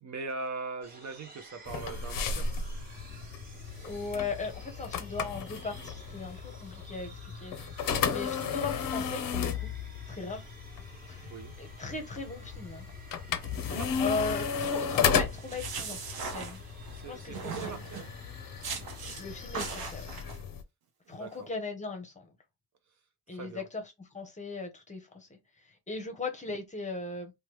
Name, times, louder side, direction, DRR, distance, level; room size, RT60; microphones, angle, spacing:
voice 1, 0.0-2.5 11.2-11.6 13.6-14.1 16.9-18.0 21.1-21.5 23.3-23.7, right 4 dB, 45° right, 0.5 m, -41 dB
sound 1, 0.8-19.9, right 2 dB, 20° right, 1.1 m, -54 dB
sound 2, 1.7-20.6, left 7 dB, 55° left, 0.6 m, -34 dB
voice 2, 3.8-7.5 8.1-9.7 10.1-10.4 11.1-11.3 11.6-12.9 14.0-16.0 16.3-16.6 17.1-17.8 19.1-20.1 21.1-22.3 23.3-23.8 24.1-25.4 25.6-27.3, left 4 dB, 20° left, 0.7 m, -37 dB
sound 3, 15.3-17.0 17.3-18.1 18.6-19.2 19.5-20.4, right 5 dB, 65° right, 0.9 m, -39 dB
3.1 x 2.2 x 3.0 m
cardioid pair, 150°, 40 cm